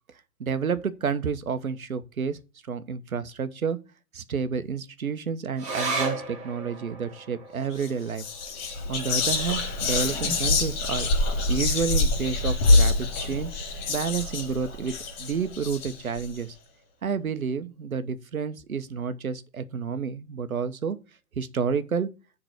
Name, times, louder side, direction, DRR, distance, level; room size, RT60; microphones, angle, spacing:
voice 1, 0.4-2.4 2.7-3.8 4.1-8.2 8.9-11.1 11.5-13.5 13.9-16.5 17.0-21.0 21.4-22.1, right 6 dB, 75° right, 1.1 m, -30 dB
sound 1, 5.6-12.3 12.7-12.8 13.1-13.8 14.3-14.4, right 3 dB, 15° right, 3.0 m, -37 dB
Whispering, 7.7-7.9 8.2-16.3, left 2 dB, 30° left, 3.3 m, -25 dB
10.0 x 3.9 x 6.4 m
figure-of-eight pair, 110°, 43 cm